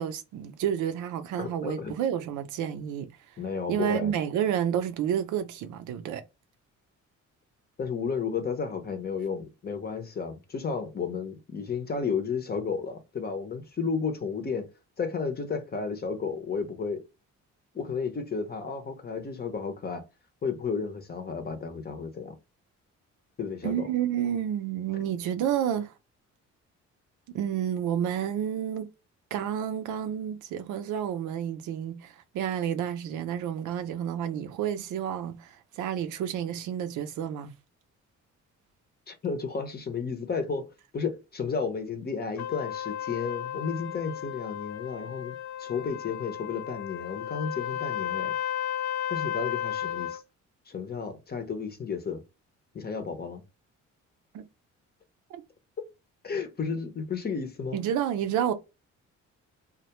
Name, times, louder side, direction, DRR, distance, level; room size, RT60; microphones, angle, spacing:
voice 1, 0.0-3.1 3.7-6.2 23.6-25.9 27.3-28.9 29.3-37.5 54.3-54.4 55.3-55.4 57.7-58.5, right 9 dB, 80° right, 0.5 m, -30 dB
voice 2, 1.4-1.9 3.4-4.1 7.8-14.7 15.0-17.0 17.7-20.0 20.4-22.4 23.4-23.9 39.1-40.7 40.9-48.4 49.1-50.2 50.7-52.2 52.7-53.4 56.2-57.8, left 5 dB, 30° left, 0.7 m, -32 dB
Trumpet, 42.4-50.2, left 11 dB, 70° left, 0.4 m, -34 dB
2.2 x 2.1 x 2.9 m
cardioid pair, 90°, 30 cm